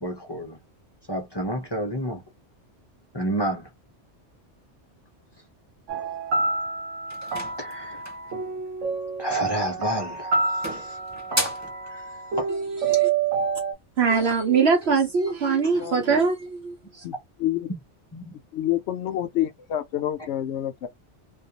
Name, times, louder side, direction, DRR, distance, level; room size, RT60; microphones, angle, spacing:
voice 1, 0.0-0.6 1.1-2.2 3.1-3.7 7.6-8.0 9.2-10.3 10.6-11.0 11.9-12.0 12.4-12.5 18.1-18.3, equal, 30° left, 0.5 m, -29 dB
sound 1, 5.9-13.7, right 5 dB, 90° right, 1.0 m, -28 dB
sound 2, 7.1-8.3 9.6-10.0 10.3-11.8, right 1 dB, 20° right, 0.6 m, -32 dB
voice 2, 14.0-17.0, right 5 dB, 65° right, 0.9 m, -22 dB
voice 3, 15.7-16.2 17.0-17.7 18.5-20.9, left 12 dB, 70° left, 0.8 m, -28 dB
2.4 x 2.3 x 2.7 m
omnidirectional pair, 1.2 m